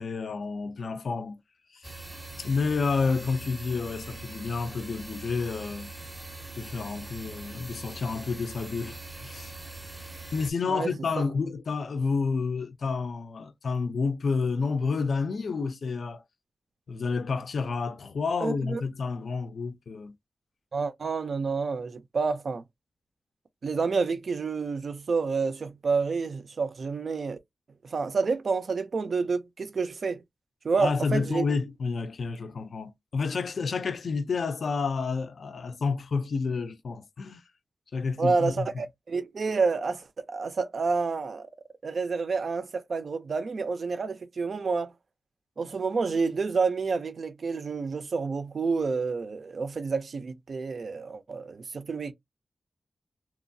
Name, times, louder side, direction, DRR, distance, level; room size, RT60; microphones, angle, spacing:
voice 1, 0.0-1.4 1.7-1.9 2.4-5.9 6.6-9.5 10.3-16.2 16.9-20.1 30.8-37.4 37.9-38.7, left 4 dB, 75° left, 0.4 m, -30 dB
sound 1, 1.8-10.5, right 3 dB, 10° right, 0.5 m, -42 dB
voice 2, 18.4-18.8 20.7-22.6 23.6-27.4 27.8-30.2 30.6-31.4 38.2-41.5 41.8-44.9 45.6-52.1, right 4 dB, 65° right, 0.4 m, -29 dB
2.9 x 2.3 x 2.6 m
wide cardioid pair, 135°, 0 cm